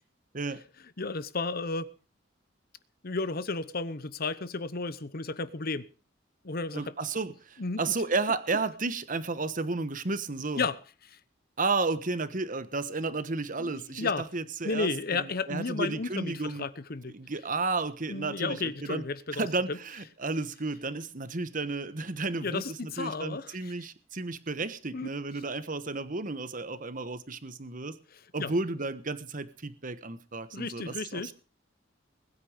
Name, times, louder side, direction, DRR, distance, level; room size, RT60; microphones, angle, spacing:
voice 1, 1.0-1.9 3.0-5.9 6.4-6.9 7.6-8.0 10.6-10.8 11.1-11.2 13.6-14.3 14.6-17.1 18.1-19.8 22.4-23.7 24.9-25.1 28.4-28.5 30.5-31.3, left 3 dB, 55° left, 1.0 m, -33 dB
voice 2, 6.7-10.6 11.6-16.6 17.1-19.0 19.3-27.9 28.3-31.4, right 3 dB, 45° right, 1.3 m, -32 dB
21.0 x 9.5 x 5.1 m
head